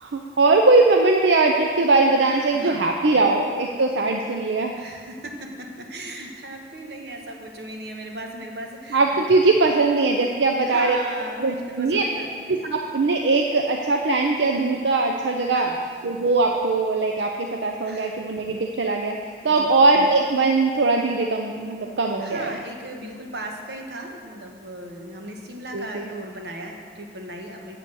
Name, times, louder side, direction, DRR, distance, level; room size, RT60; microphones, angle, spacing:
voice 1, 0.0-4.7 8.9-11.0 11.4-12.0 12.5-15.7 16.0-19.2 19.4-22.6 25.7-26.1, right 3 dB, 85° right, 2 dB, 0.6 m, -20 dB
voice 2, 2.2-2.9 4.7-9.2 10.6-12.3 15.5-15.8 17.2-17.3 17.9-18.2 19.4-19.7 22.2-27.8, right 1 dB, 65° right, 1 dB, 1.2 m, -37 dB
8.1 x 7.5 x 6.3 m, 2.1 s
head